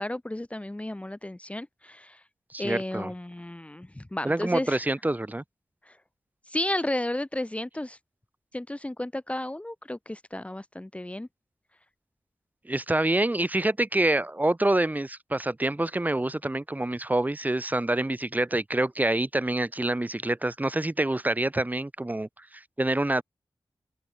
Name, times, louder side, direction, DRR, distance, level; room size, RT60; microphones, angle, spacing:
voice 1, 0.0-2.2 2.6-4.8 5.9-6.0 6.5-8.0 8.5-11.3, left 1 dB, 15° left, 1.8 m, -33 dB
voice 2, 2.5-3.1 4.2-5.4 12.7-23.2, right 1 dB, 20° right, 2.4 m, -26 dB
open air
wide cardioid pair, 85°, 8 cm